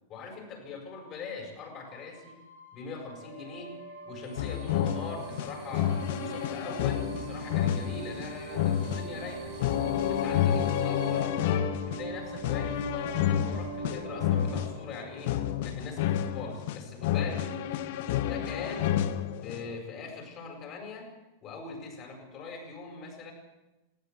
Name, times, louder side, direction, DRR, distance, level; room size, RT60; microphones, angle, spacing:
voice 1, 0.1-2.4 2.7-9.6 10.0-11.3 11.9-15.4 15.6-17.5 18.2-19.0 19.4-21.1 21.4-23.3, left 4 dB, 35° left, 2 dB, 7.7 m, -42 dB
sound 1, 1.9-16.3, right 3 dB, 85° right, 5.3 m, -42 dB
sound 2, 4.2-11.2, right 6 dB, 45° right, 4.7 m, -50 dB
sound 3, 4.4-19.8, left 10 dB, 55° left, 1.3 m, -30 dB
19.0 x 17.5 x 8.4 m, 0.99 s
figure-of-eight pair, 90°, 0 cm